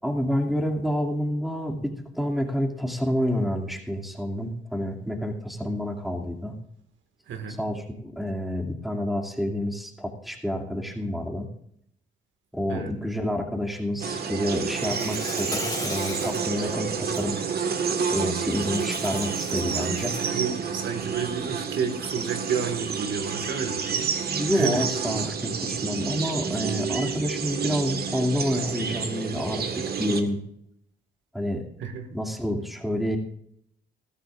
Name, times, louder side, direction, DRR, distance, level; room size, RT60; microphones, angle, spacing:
voice 1, 0.0-6.5 7.5-11.5 12.5-17.4 18.1-20.3 24.3-30.4 31.3-31.6 32.1-33.2, equal, ahead, 1 dB, 2.5 m, -28 dB
voice 2, 7.3-7.6 12.7-12.9 20.3-24.1 24.5-24.8 31.8-32.1, right 6 dB, 70° right, 6 dB, 1.9 m, -30 dB
sound 1, 14.0-30.2, right 6 dB, 50° right, 1.6 m, -29 dB
Insect, 14.7-16.5 17.0-17.2 18.5-20.4, left 3 dB, 20° left, 2.8 m, -38 dB
21.0 x 14.0 x 2.5 m, 0.71 s
cardioid pair, 90°, 20 cm